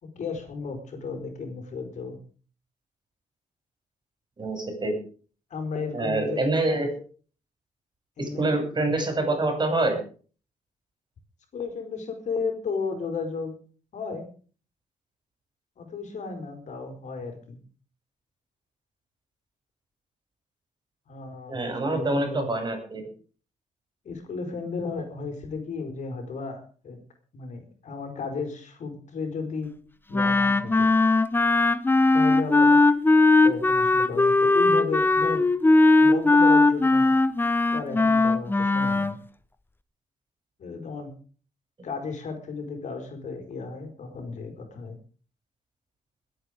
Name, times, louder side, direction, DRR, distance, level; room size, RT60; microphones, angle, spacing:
voice 1, 0.0-2.2 5.5-6.4 8.2-8.5 11.5-13.6 13.9-14.3 15.8-17.6 21.1-22.5 24.0-27.0 27.3-29.7 30.1-30.9 32.1-32.8 33.4-35.5 36.0-37.1 37.7-39.2 40.6-41.1 41.8-45.0, left 4 dB, 65° left, 5 dB, 4.6 m, -34 dB
voice 2, 4.4-5.0 5.9-6.9 8.2-10.0 21.5-23.0, right 2 dB, 35° right, 5 dB, 6.5 m, -26 dB
Wind instrument woodwind instrument, 30.1-39.1, left 3 dB, 15° left, 0.9 m, -19 dB
22.5 x 9.0 x 5.1 m, 0.41 s
cardioid pair, 90°, 13 cm